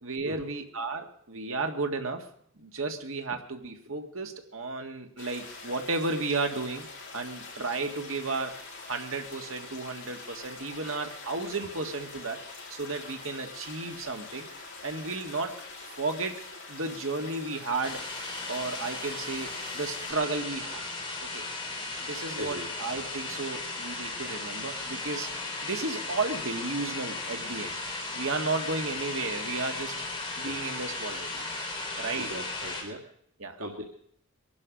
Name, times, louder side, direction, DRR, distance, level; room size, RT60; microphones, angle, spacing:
voice 1, 0.0-2.3 2.6-6.9 7.1-12.4 12.7-14.5 14.8-15.6 15.9-16.4 16.7-18.1 18.5-20.8 21.3-21.5 22.0-25.3 25.6-27.7 28.1-30.0 30.4-31.5 32.0-32.3 33.4-33.6, right 3 dB, 65° right, 4 dB, 1.8 m, -33 dB
sound 1, 5.2-20.1, left 3 dB, 55° left, 6.3 m, -44 dB
sound 2, 17.8-32.8, left 3 dB, 20° left, 3.9 m, -36 dB
voice 2, 22.4-22.7 30.5-30.6 32.2-33.0 33.6-33.9, equal, 90° right, -1 dB, 1.9 m, -38 dB
22.5 x 12.0 x 5.3 m, 0.67 s
head